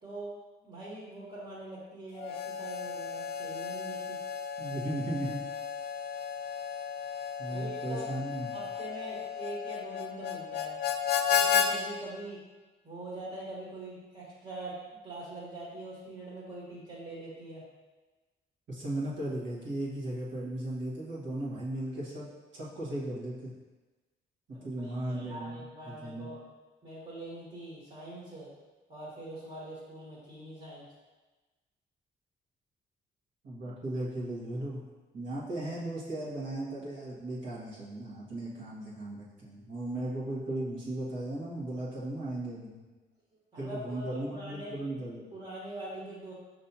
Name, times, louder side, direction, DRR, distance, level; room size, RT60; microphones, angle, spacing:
voice 1, 0.0-4.2 7.5-8.1 8.5-10.8 11.3-12.4 12.8-17.6 24.5-26.4 26.8-28.5 28.9-30.9 43.5-44.7 45.3-46.3, right 2 dB, 30° right, -7 dB, 1.4 m, -43 dB
Harmonica, 2.2-11.7, left 7 dB, 55° left, 0.4 m, -33 dB
voice 2, 4.6-5.4 7.4-8.5 18.7-22.3 22.5-23.5 24.6-26.3 33.4-34.8 35.1-42.8 43.6-45.3, right 1 dB, 65° right, -7 dB, 1.5 m, -36 dB
5.4 x 3.1 x 2.8 m, 1.2 s
cardioid pair, 90°, 20 cm